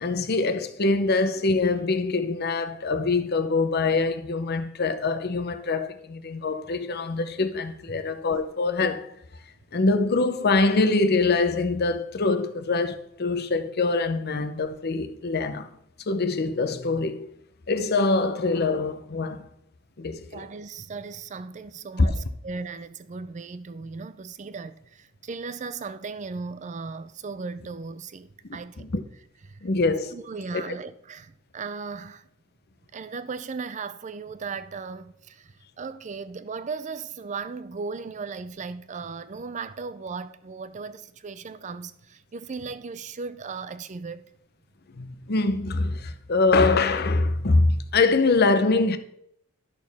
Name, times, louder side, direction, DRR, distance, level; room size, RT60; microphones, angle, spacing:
voice 1, 0.0-9.1 9.7-15.7 16.1-17.3 17.7-19.5 20.0-20.4 22.0-22.1 28.5-29.0 29.6-30.1 30.5-30.6 45.0-49.0, left 3 dB, 50° left, 0.7 m, -24 dB
voice 2, 20.3-28.9 29.5-29.6 30.1-32.3 32.9-44.3, right 4 dB, 35° right, 0.4 m, -37 dB
11.5 x 6.4 x 3.5 m
head